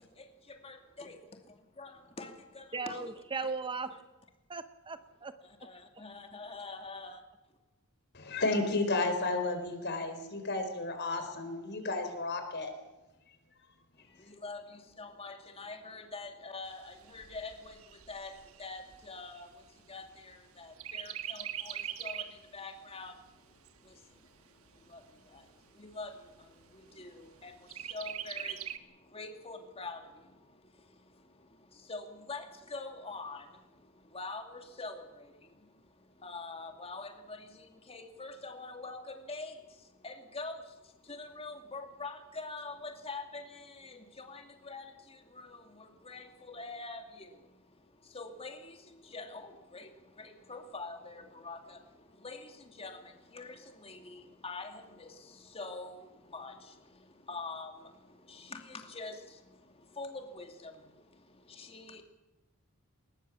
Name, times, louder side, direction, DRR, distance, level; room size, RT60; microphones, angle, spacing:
voice 1, 0.1-1.2 1.8-3.1 3.4-3.5 5.4-7.2 14.0-62.0, left 3 dB, 30° left, 2.5 m, -46 dB
voice 2, 2.7-3.9 4.5-5.4, right 4 dB, 25° right, 0.8 m, -37 dB
voice 3, 8.1-12.7 14.1-14.2, left 2 dB, 55° left, 4.0 m, -32 dB
Chirp tweet, 16.7-20.4 20.8-22.5 22.9-23.0 23.3-24.3 24.9-25.0 25.4-25.5 25.9-26.4 27.7-28.8, right 10 dB, 80° right, 1.4 m, -42 dB
21.0 x 20.5 x 7.2 m
head